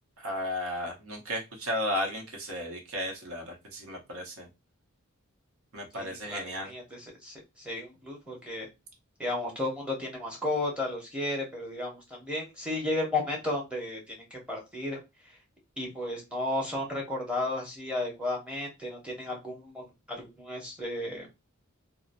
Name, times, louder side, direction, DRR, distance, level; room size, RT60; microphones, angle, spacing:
voice 1, 0.2-4.5 5.7-6.7, equal, 70° right, 1 dB, 0.9 m, -34 dB
voice 2, 5.9-8.7 9.2-15.4 15.8-21.3, left 2 dB, 5° right, -1 dB, 0.8 m, -34 dB
2.7 x 2.0 x 2.5 m, 0.23 s
head